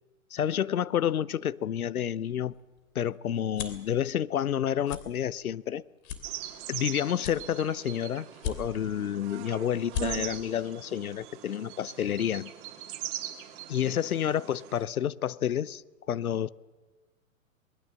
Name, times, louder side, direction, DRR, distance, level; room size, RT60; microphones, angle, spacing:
voice 1, 0.3-2.6 2.9-5.8 6.7-12.5 13.7-16.5, left 10 dB, 85° left, 0.8 m, -29 dB
sound 1, 2.3-3.9 4.4-4.6 4.8-5.0 5.5-5.6 6.0-6.8 7.2-7.9 8.3-9.0 9.4-9.5 9.8-10.1, left 8 dB, 50° left, 3.1 m, -36 dB
sound 2, 6.2-14.8, right 12 dB, 40° right, 2.5 m, -41 dB
23.5 x 20.5 x 7.5 m
hypercardioid pair, 115°, 42 cm